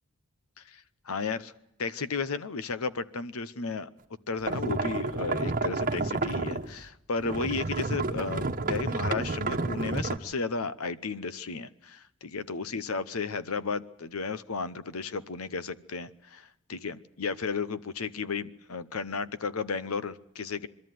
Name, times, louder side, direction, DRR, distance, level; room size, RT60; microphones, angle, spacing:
voice 1, 0.6-1.5 1.8-3.9 4.3-20.7, left 4 dB, 80° left, 16 dB, 0.9 m, -34 dB
sound 1, 4.5-6.9 7.2-10.2, right 3 dB, 40° right, 1.2 m, -30 dB
24.0 x 13.5 x 9.3 m, 0.86 s
head